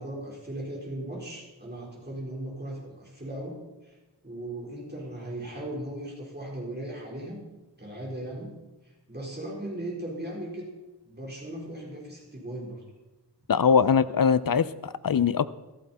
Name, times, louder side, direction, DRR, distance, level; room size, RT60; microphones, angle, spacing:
voice 1, 0.0-4.0 4.2-7.4 7.8-8.6 9.1-10.7 11.1-12.8, right 1 dB, 25° right, -4 dB, 4.4 m, -37 dB
voice 2, 13.5-15.5, left 6 dB, 55° left, 15 dB, 0.7 m, -22 dB
15.0 x 14.5 x 4.3 m, 1.1 s
wide cardioid pair, 60°, 42 cm